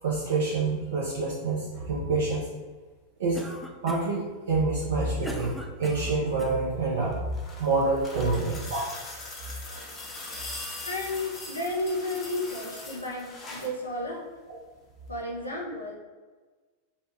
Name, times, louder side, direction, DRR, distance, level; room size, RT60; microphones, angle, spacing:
voice 1, 0.0-2.5 3.2-3.4 3.8-7.2 7.6-8.8, right 3 dB, 60° right, -5 dB, 0.5 m, -27 dB
Cough, 3.3-4.2 4.8-6.6, right 1 dB, ahead, 0.3 m, -41 dB
sound 1, 7.0-13.8 15.1-15.2, left 2 dB, 25° left, 0.7 m, -41 dB
voice 2, 10.8-14.3 15.1-15.9, left 1 dB, 80° left, -2 dB, 0.5 m, -32 dB
3.2 x 2.1 x 2.9 m, 1.3 s
figure-of-eight pair, 90°, 0 cm